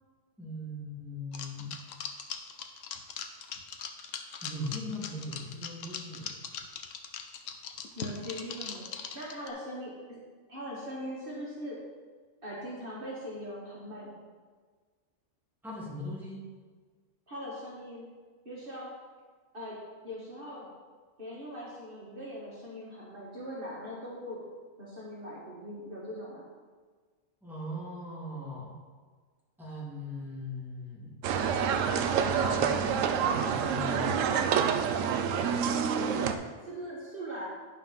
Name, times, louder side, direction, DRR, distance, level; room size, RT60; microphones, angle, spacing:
voice 1, 0.4-1.7 4.4-6.3 15.6-16.4 27.4-28.7 29.6-31.2 32.3-34.1, left 1 dB, ahead, -7 dB, 2.3 m, -39 dB
sound 1, 1.3-9.5, left 7 dB, 80° left, 1.1 m, -40 dB
voice 2, 7.9-8.9 9.1-10.2 10.5-11.8 12.4-14.2 17.3-18.1 18.5-18.9 19.5-19.8 20.0-20.7 21.2-24.4 24.8-26.4 35.1-35.6 36.6-37.5, equal, 45° right, -6 dB, 1.8 m, -41 dB
sound 2, 31.2-36.3, right 7 dB, 85° right, 1.0 m, -27 dB
11.0 x 4.1 x 5.6 m, 1.5 s
omnidirectional pair, 1.3 m